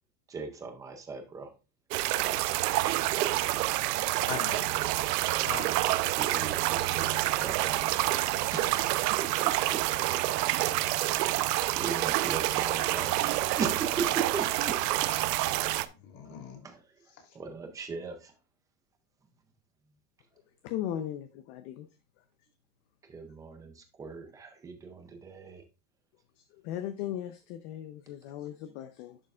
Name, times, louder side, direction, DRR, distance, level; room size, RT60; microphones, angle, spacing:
voice 1, 0.3-1.5 6.1-7.9 8.5-8.9 9.2-9.8 11.8-14.8 16.2-18.3 23.0-25.6, right 5 dB, 10° right, 0.4 m, -39 dB
sound 1, 1.9-15.9, right 16 dB, 75° right, 0.8 m, -28 dB
voice 2, 3.8-4.7 5.4-5.9 7.9-8.9 16.0-16.6 17.2-17.4, left 6 dB, 80° left, 3.1 m, -42 dB
voice 3, 20.6-21.9 26.4-29.2, left 11 dB, 45° left, 0.7 m, -37 dB
11.0 x 6.5 x 2.4 m
supercardioid pair, 165°, 48 cm